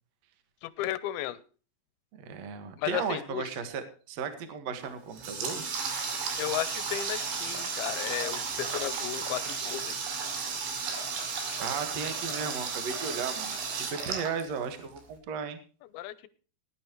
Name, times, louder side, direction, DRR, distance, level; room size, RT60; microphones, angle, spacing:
voice 1, 0.6-1.4 2.8-3.5 6.4-10.0 15.9-16.3, left 14 dB, 75° left, 15 dB, 2.5 m, -34 dB
voice 2, 2.1-5.6 11.6-15.6, right 6 dB, 50° right, 9 dB, 2.2 m, -35 dB
Water tap faucet, 4.8-15.0, right 5 dB, 85° right, 4.6 m, -34 dB
19.0 x 11.0 x 3.1 m, 0.38 s
omnidirectional pair, 4.9 m